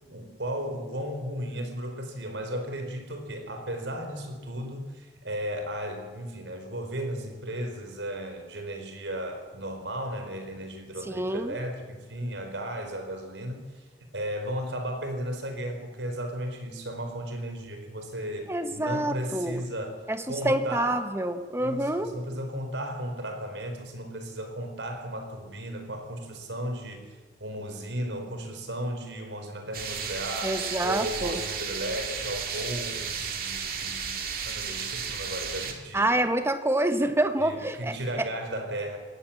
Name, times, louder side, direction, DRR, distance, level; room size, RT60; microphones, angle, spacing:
voice 1, 0.0-13.8 14.1-21.0 21.6-27.1 27.4-36.2 37.4-39.0, equal, 85° right, 5 dB, 4.6 m, -35 dB
voice 2, 11.1-11.5 18.5-19.6 20.1-22.1 30.4-31.4 35.9-37.9, right 1 dB, 15° right, 8 dB, 1.4 m, -27 dB
sound 1, 29.7-35.7, right 6 dB, 55° right, 2.7 m, -33 dB
21.0 x 17.0 x 7.3 m, 1.4 s
head